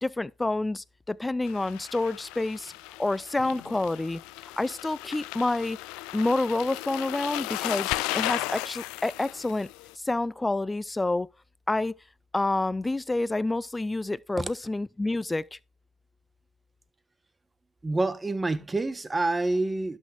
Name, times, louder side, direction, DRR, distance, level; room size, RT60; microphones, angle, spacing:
voice 1, 0.0-2.7 3.0-4.2 4.6-5.8 6.1-9.7 10.0-11.3 11.7-11.9 12.3-15.6, left 2 dB, 15° left, 0.4 m, -28 dB
sound 1, 1.5-9.9, left 19 dB, 90° left, 0.4 m, -35 dB
voice 2, 17.8-20.0, right 2 dB, 20° right, 1.1 m, -27 dB
11.5 x 6.3 x 3.3 m
supercardioid pair, 75°, 0 cm